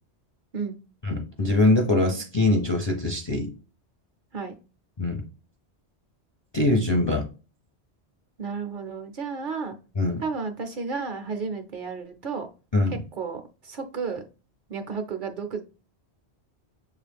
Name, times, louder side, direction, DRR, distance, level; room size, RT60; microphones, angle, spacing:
voice 1, 1.0-3.5 5.0-5.2 6.5-7.3 10.0-10.2 12.7-13.0, left 2 dB, 35° left, 1 dB, 0.4 m, -23 dB
voice 2, 8.4-9.8 10.2-12.5 12.9-14.2 14.7-15.6, right 5 dB, 55° right, 6 dB, 0.7 m, -32 dB
6.6 x 2.4 x 3.3 m, 0.34 s
omnidirectional pair, 1.1 m